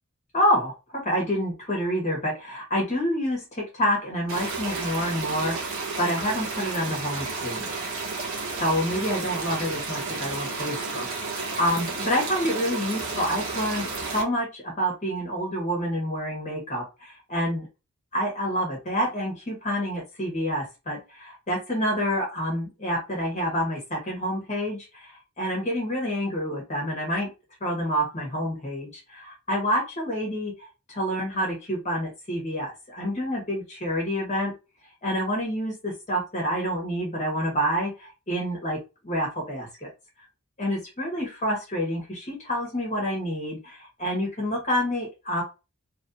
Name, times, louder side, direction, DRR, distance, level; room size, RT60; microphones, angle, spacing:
voice 1, 0.3-7.7 8.6-11.0 11.6-17.7 18.1-27.3 27.6-34.5 35.0-38.8 39.0-39.9 40.6-45.4, equal, 35° left, -2 dB, 1.2 m, -28 dB
sound 1, 4.3-14.2, right 4 dB, 60° right, 1.0 m, -32 dB
3.1 x 2.6 x 2.6 m, 0.27 s
head